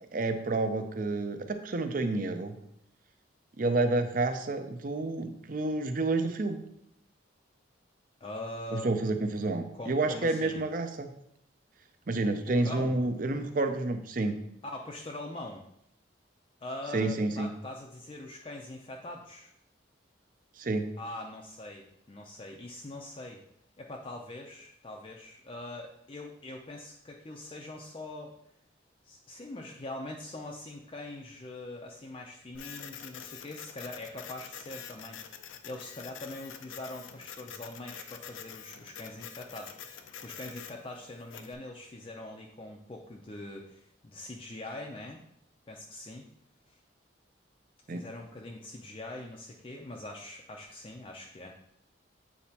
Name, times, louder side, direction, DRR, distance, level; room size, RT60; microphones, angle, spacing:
voice 1, 0.1-2.6 3.6-6.6 8.7-11.1 12.1-14.4 16.9-17.5 20.6-20.9 47.9-48.0, right 2 dB, 45° right, 8 dB, 0.5 m, -29 dB
voice 2, 8.2-8.9 9.7-10.6 12.2-13.0 14.6-15.7 16.6-19.5 21.0-23.4 23.8-28.4 29.0-45.2 45.7-46.3 46.7-46.8 47.9-51.6, left 2 dB, 30° left, 0 dB, 0.4 m, -43 dB
Printer, 32.5-41.5, left 8 dB, 85° left, 0.5 m, -46 dB
8.6 x 4.1 x 2.8 m, 0.74 s
head